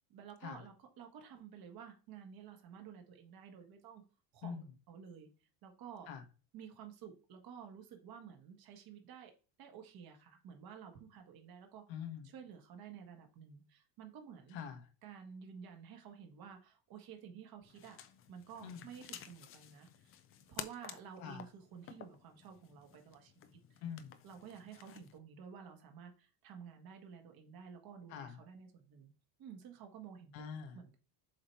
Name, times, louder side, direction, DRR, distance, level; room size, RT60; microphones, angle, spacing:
voice 1, 0.1-4.0 4.3-5.3 5.6-6.1 6.5-9.3 9.6-11.8 12.2-14.6 15.0-18.0 18.3-20.1 20.5-23.8 24.2-29.1 29.4-30.3 30.7-31.0, right 7 dB, 45° right, 1.6 m, -52 dB
voice 2, 11.9-12.3 14.5-14.9 18.6-18.9 21.2-21.4 23.8-24.1 28.1-28.4 30.3-30.8, left 7 dB, 70° left, 1.3 m, -44 dB
sound 1, 17.6-25.2, left 10 dB, 30° left, 0.4 m, -52 dB
7.5 x 3.0 x 4.6 m
cardioid pair, 145°, 48 cm